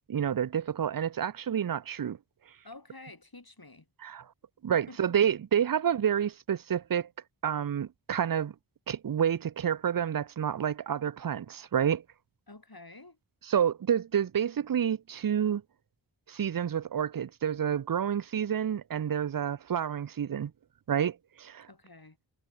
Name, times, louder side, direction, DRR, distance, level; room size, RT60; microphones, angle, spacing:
voice 1, 0.1-2.2 4.0-4.3 4.6-7.1 7.4-8.5 8.9-12.0 13.5-15.6 16.3-20.5 20.9-21.7, right 8 dB, 50° right, 0.5 m, -29 dB
voice 2, 2.6-3.9 4.7-5.2 12.5-13.2 21.7-22.2, left 2 dB, 50° left, 6.0 m, -50 dB
wide cardioid pair, 45°, 45 cm